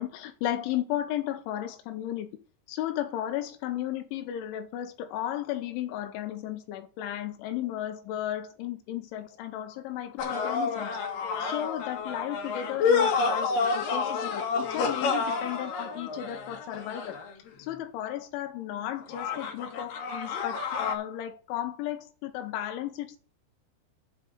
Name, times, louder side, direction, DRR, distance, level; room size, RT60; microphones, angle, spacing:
voice 1, 0.0-2.3 2.7-11.0 11.4-17.2 17.6-23.2, left 12 dB, 85° left, 8 dB, 3.3 m, -34 dB
sound 1, 10.2-17.5 19.1-20.9, left 5 dB, 55° left, 3.0 m, -29 dB
8.0 x 5.8 x 7.8 m, 0.38 s
omnidirectional pair, 5.4 m